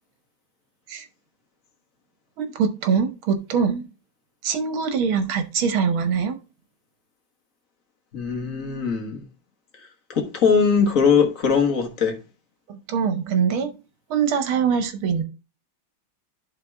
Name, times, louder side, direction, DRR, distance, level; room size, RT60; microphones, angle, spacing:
voice 1, 2.4-3.9 4.4-6.4 12.7-13.7 14.1-15.2, right 6 dB, 75° right, 1.9 m, -23 dB
voice 2, 8.1-9.2 10.1-12.2, left 6 dB, 45° left, 1.6 m, -20 dB
11.0 x 3.7 x 3.4 m
omnidirectional pair, 2.3 m